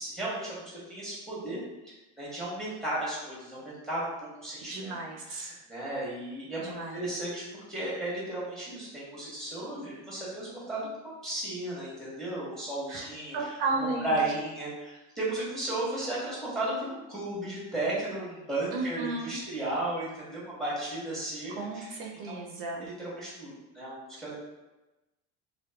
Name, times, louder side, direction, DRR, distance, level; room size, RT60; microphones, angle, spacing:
voice 1, 0.0-1.6 1.8-4.1 4.4-4.9 5.2-13.6 14.0-22.4 22.8-24.3, right 1 dB, ahead, -7 dB, 1.0 m, -35 dB
voice 2, 4.7-5.5 6.6-7.0 12.9-13.1 13.3-14.1 18.7-19.4 21.6-22.8, right 3 dB, 60° right, 0 dB, 0.5 m, -34 dB
2.9 x 2.2 x 2.2 m, 1.0 s
supercardioid pair, 125°, 35 cm